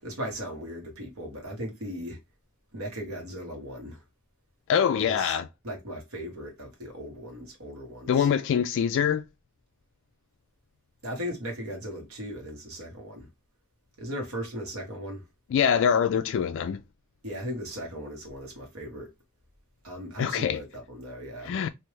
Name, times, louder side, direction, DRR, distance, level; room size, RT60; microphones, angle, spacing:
voice 1, 0.0-2.2 2.7-4.0 5.0-5.4 5.6-8.3 11.0-13.3 14.0-15.2 17.2-19.1 19.8-21.6, equal, 85° right, 1.3 m, -37 dB
voice 2, 4.7-5.5 8.1-9.2 15.5-16.8 20.2-20.6 21.5-21.7, left 8 dB, 60° left, 0.3 m, -24 dB
3.2 x 2.6 x 3.0 m
head